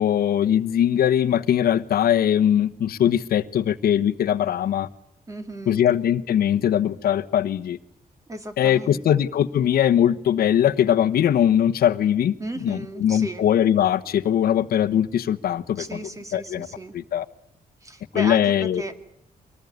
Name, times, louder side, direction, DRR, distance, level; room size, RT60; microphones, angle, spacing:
voice 1, 0.0-4.9 5.7-7.8 8.6-12.3 12.6-16.7 16.9-17.2 18.1-18.8, left 10 dB, 90° left, 12 dB, 1.2 m, -21 dB
voice 2, 5.3-5.8 8.3-9.2 12.4-13.4 15.8-16.9 17.8-18.9, right 1 dB, 20° right, 8 dB, 2.4 m, -35 dB
25.0 x 19.5 x 9.5 m, 0.73 s
wide cardioid pair, 170°, 15 cm